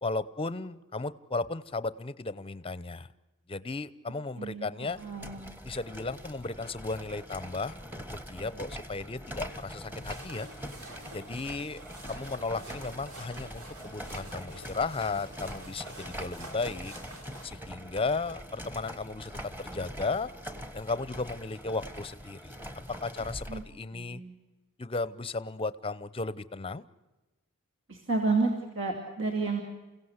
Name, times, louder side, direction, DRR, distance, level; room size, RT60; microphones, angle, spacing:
voice 1, 0.0-3.1 3.5-5.0 5.6-10.5 11.1-11.8 12.1-16.9 17.4-20.3 20.7-22.5 23.0-24.2 24.8-26.8, left 3 dB, 25° left, 16 dB, 0.8 m, -35 dB
voice 2, 4.4-5.5 23.5-23.6 23.9-24.3 27.9-29.6, right 3 dB, 60° right, 2 dB, 2.8 m, -31 dB
sound 1, 4.8-23.7, equal, 10° right, 1.5 m, -43 dB
sound 2, 9.9-17.5, right 1 dB, 75° right, 5.2 m, -48 dB
29.0 x 16.5 x 8.1 m, 1.1 s
head